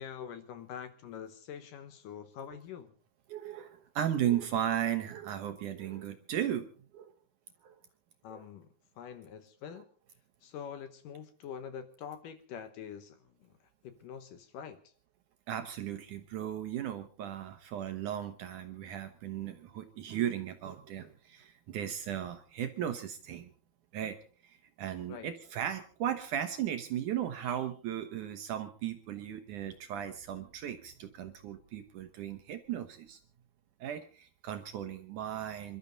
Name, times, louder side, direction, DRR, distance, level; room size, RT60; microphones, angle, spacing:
voice 1, 0.0-2.9 8.2-8.7 9.0-9.9 10.4-13.5 13.8-14.8 25.1-25.3, left 8 dB, 70° left, 10 dB, 2.4 m, -45 dB
voice 2, 3.3-6.7 6.9-7.1 7.6-7.8 8.3-8.4 15.5-23.5 23.9-24.2 24.4-33.2 33.8-35.8, right 10 dB, 70° right, 8 dB, 2.1 m, -36 dB
27.5 x 12.5 x 3.9 m, 0.39 s
omnidirectional pair, 4.5 m